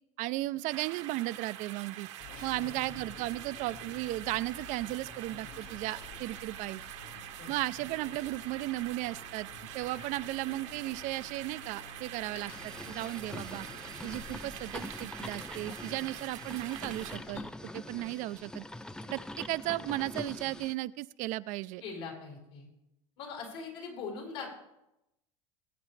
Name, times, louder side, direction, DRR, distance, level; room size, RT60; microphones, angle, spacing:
voice 1, 0.2-2.1 2.4-6.8 7.5-9.5 9.7-13.7 14.0-17.4 17.7-18.6 19.1-21.8, right 18 dB, 55° right, 16 dB, 0.4 m, -35 dB
sound 1, 0.7-17.2, right 12 dB, 80° right, 1.1 m, -45 dB
sound 2, 2.2-17.5, left 5 dB, 55° left, 1.3 m, -51 dB
voice 2, 2.5-2.9 7.4-7.5 21.8-22.7 23.2-24.6, left 5 dB, 75° left, -2 dB, 4.6 m, -42 dB
sound 3, 12.5-20.7, left 1 dB, 5° left, 0.4 m, -44 dB
21.0 x 8.7 x 3.2 m, 0.89 s
supercardioid pair, 105°, 15 cm